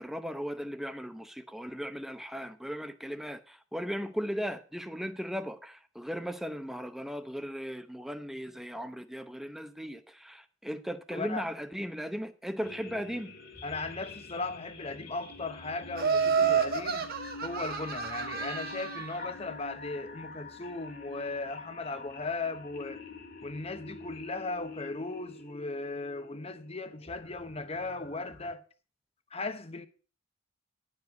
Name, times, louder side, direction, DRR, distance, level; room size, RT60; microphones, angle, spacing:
voice 1, 0.0-13.3, equal, ahead, 0.8 m, -37 dB
voice 2, 11.1-11.5 13.6-17.1 17.4-23.0 23.4-28.6 29.3-29.9, left 3 dB, 30° left, 0.9 m, -37 dB
sound 1, 12.6-28.5, left 3 dB, 50° left, 2.0 m, -47 dB
Laughter, 16.0-19.2, right 6 dB, 45° right, 1.2 m, -29 dB
11.0 x 5.0 x 8.0 m
head